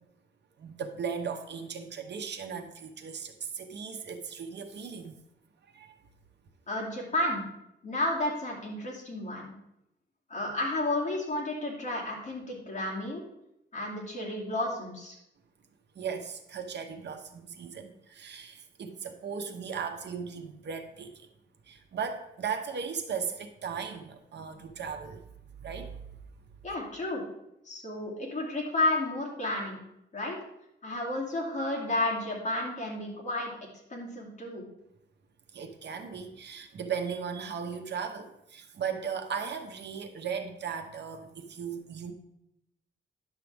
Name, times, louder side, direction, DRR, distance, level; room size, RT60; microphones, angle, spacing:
voice 1, 0.6-5.2 5.7-5.9 15.9-21.3 21.7-25.2 25.6-26.0 35.5-42.1, right 6 dB, 65° right, 6 dB, 1.0 m, -37 dB
voice 2, 6.7-7.4 7.8-9.5 10.3-13.2 13.7-15.2 26.6-27.2 27.6-29.8 30.1-30.4 30.8-33.5 33.9-34.6, left 2 dB, 40° left, -3 dB, 2.8 m, -32 dB
10.5 x 7.4 x 3.5 m, 0.82 s
wide cardioid pair, 130°, 19 cm